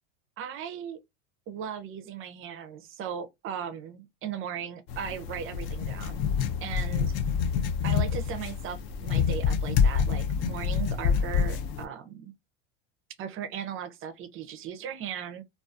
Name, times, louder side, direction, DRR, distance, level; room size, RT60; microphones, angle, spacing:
voice 1, 0.4-1.0 1.5-6.2 6.6-7.1 7.8-12.3 13.2-15.4, right 8 dB, 35° right, 0.5 m, -37 dB
sound 1, 4.9-11.8, left 6 dB, 45° left, 0.4 m, -27 dB
2.3 x 2.3 x 2.4 m
supercardioid pair, 110°, 36 cm